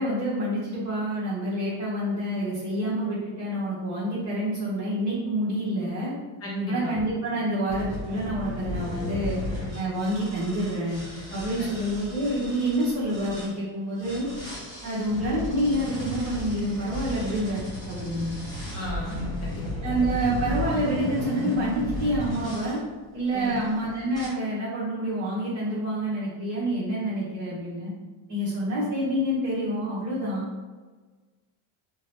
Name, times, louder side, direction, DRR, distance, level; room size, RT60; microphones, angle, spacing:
voice 1, 0.0-6.1 6.7-9.4 9.7-11.0 11.3-14.3 14.8-18.4 19.8-22.8 23.1-27.9 28.3-30.5, right 1 dB, 40° right, -10 dB, 1.3 m, -28 dB
voice 2, 6.4-6.9 18.7-20.0 23.3-23.6, equal, 30° left, -3 dB, 1.0 m, -33 dB
sound 1, 7.7-13.5 14.0-22.8 23.4-23.7 24.1-24.3, left 1 dB, 10° left, 1.3 m, -35 dB
3.6 x 2.2 x 3.1 m, 1.3 s
cardioid pair, 140°, 45 cm